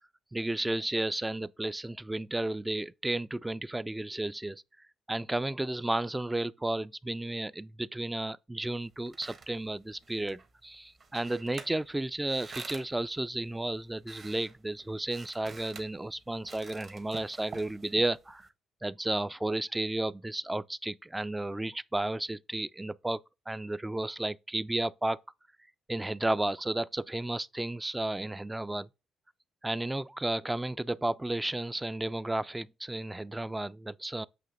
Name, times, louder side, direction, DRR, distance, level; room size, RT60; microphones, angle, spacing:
voice 1, 0.3-4.6 5.1-18.5 18.8-23.2 23.5-25.2 25.9-28.9 29.6-34.3, right 2 dB, 10° right, 0.3 m, -33 dB
sound 1, 8.8-18.5, right 4 dB, 50° right, 1.2 m, -50 dB
7.8 x 2.8 x 5.0 m
cardioid pair, 90°, 0 cm